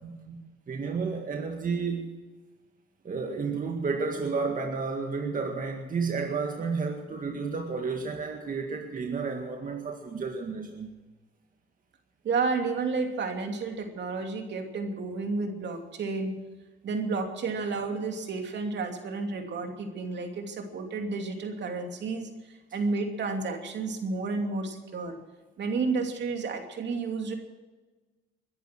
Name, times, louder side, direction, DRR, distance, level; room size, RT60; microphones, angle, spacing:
voice 1, 0.0-0.4 12.2-16.3 16.8-22.3 22.7-25.2 25.6-27.4, right 4 dB, 65° right, 4 dB, 2.8 m, -31 dB
voice 2, 0.7-2.2 3.0-10.9, right 4 dB, 45° right, 3 dB, 2.0 m, -31 dB
21.5 x 11.0 x 6.1 m, 1.2 s
cardioid pair, 90°, 20 cm